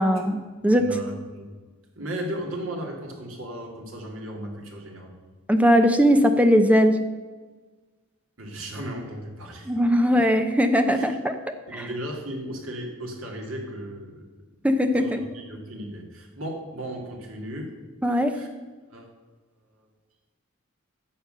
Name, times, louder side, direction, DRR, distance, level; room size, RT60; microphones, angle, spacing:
voice 1, 0.0-0.8 5.5-7.0 9.7-11.4 11.7-11.8 14.6-15.2 18.0-18.3, equal, 5° right, 7 dB, 0.7 m, -20 dB
voice 2, 0.8-1.5 2.0-5.1 8.4-9.8 10.9-11.1 11.7-14.2 14.9-17.7 18.2-18.5 18.9-19.1 19.8-19.9, right 1 dB, 80° right, 1 dB, 2.4 m, -35 dB
9.9 x 7.1 x 6.7 m, 1.3 s
head